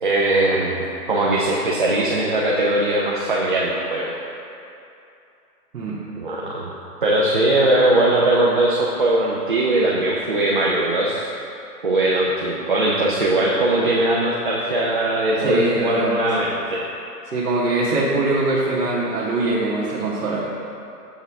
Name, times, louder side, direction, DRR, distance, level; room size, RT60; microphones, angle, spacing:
voice 1, 0.0-4.1 6.2-6.7 7.0-11.3 11.8-16.8, right 1 dB, 35° right, -4 dB, 0.4 m, -20 dB
voice 2, 15.4-16.1 17.3-20.4, right 2 dB, 65° right, -7 dB, 1.4 m, -22 dB
7.3 x 5.5 x 3.5 m, 2.7 s
hypercardioid pair, 145°, 49 cm